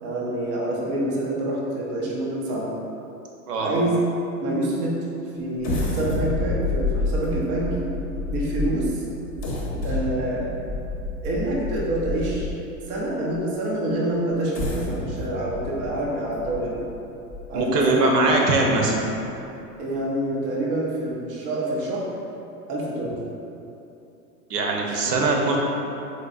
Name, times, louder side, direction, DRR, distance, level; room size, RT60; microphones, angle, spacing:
voice 1, 0.0-2.7 3.6-4.0 4.4-5.0 5.4-7.9 8.3-9.0 9.8-10.5 11.2-12.5 12.9-16.8 17.5-18.3 19.8-22.1 22.7-23.2 24.9-25.0, right 1 dB, 25° right, -5 dB, 0.3 m, -27 dB
sound 1, 5.6-12.7 13.3-13.4 14.3-17.8 18.3-18.4 18.8-19.1, left 2 dB, 25° left, 0.7 m, -29 dB
voice 2, 17.5-18.9 24.5-25.6, right 2 dB, 75° right, 0 dB, 0.8 m, -21 dB
3.9 x 3.2 x 2.3 m, 2.8 s
hypercardioid pair, 100°, 48 cm